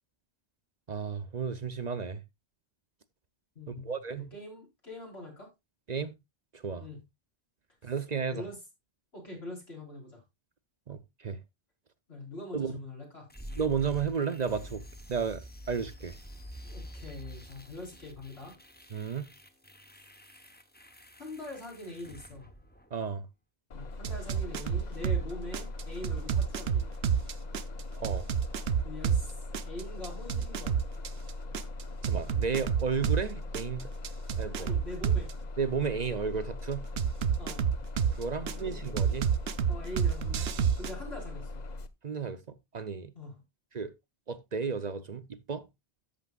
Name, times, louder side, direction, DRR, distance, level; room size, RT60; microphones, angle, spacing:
voice 1, 0.9-2.2 3.7-4.3 5.9-6.1 6.5-6.8 7.8-8.4 10.9-11.4 12.5-12.8 13.6-14.8 15.1-16.2 18.9-19.3 22.9-23.3 28.0-28.3 32.0-33.9 34.4-34.7 35.6-36.9 38.2-39.3 42.0-43.1 43.7-43.9 44.3-45.6, right 6 dB, 50° right, 0.7 m, -33 dB
voice 2, 3.5-5.5 6.8-7.0 7.8-7.9 8.3-8.6 9.1-10.2 12.1-13.3 16.6-18.5 21.2-22.5 23.7-26.8 28.8-30.8 34.6-35.3 37.4-37.8 38.4-38.8 39.7-41.5 43.1-43.4, left 2 dB, 85° left, 4.7 m, -43 dB
sound 1, 13.3-23.3, equal, 10° left, 0.9 m, -47 dB
Bus, 23.7-41.9, left 2 dB, 45° left, 0.8 m, -40 dB
sound 2, 24.0-25.2 25.5-29.2 29.5-33.2 33.5-35.3 37.0-38.5 39.0-40.9, right 7 dB, 80° right, 0.9 m, -28 dB
13.5 x 6.8 x 2.3 m
omnidirectional pair, 1.0 m